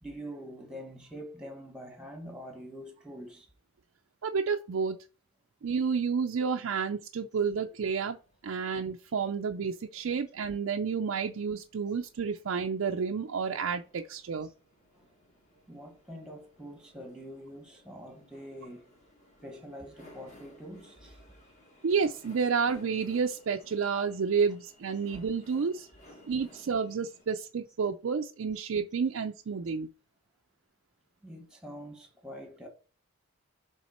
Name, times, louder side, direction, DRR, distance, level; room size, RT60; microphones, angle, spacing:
voice 1, 0.0-3.5 5.7-5.9 9.2-9.3 14.4-14.5 14.9-15.0 15.7-18.9 19.4-21.4 24.9-25.1 26.0-26.2 27.3-27.4 31.2-32.7, equal, 5° right, 1.3 m, -45 dB
voice 2, 4.2-5.0 5.6-8.2 8.4-14.5 21.8-25.9 26.3-29.9, right 5 dB, 65° right, 0.4 m, -30 dB
sound 1, 7.5-27.3, left 1 dB, 35° left, 1.6 m, -59 dB
7.2 x 3.5 x 4.3 m
head